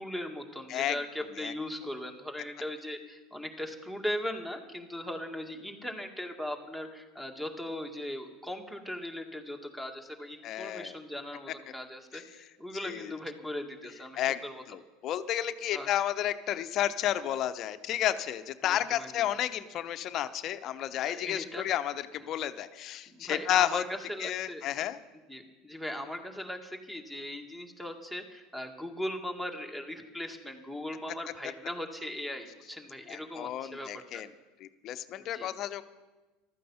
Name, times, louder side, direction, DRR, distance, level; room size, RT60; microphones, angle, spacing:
voice 1, 0.0-14.6 15.7-15.9 18.6-19.1 21.1-21.7 23.1-24.6 25.3-34.2 35.3-35.5, left 1 dB, 5° right, 5 dB, 2.0 m, -39 dB
voice 2, 10.4-11.0 12.1-12.2 12.8-13.1 14.2-23.8 24.2-25.0 33.1-34.3 34.6-35.8, left 12 dB, 50° left, 11 dB, 0.8 m, -32 dB
14.5 x 13.0 x 5.7 m, 1.2 s
hypercardioid pair, 75°, 0 cm